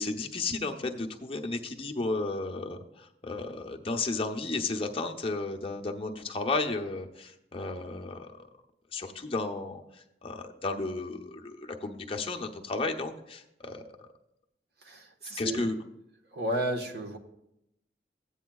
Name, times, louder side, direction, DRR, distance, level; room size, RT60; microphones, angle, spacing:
voice 1, 0.0-8.3 8.9-9.8 10.2-13.8 15.4-15.8, left 3 dB, 30° left, 2 dB, 0.8 m, -33 dB
voice 2, 14.8-15.7 16.3-17.2, right 1 dB, 65° right, 3 dB, 1.2 m, -33 dB
15.0 x 9.0 x 2.3 m, 0.83 s
head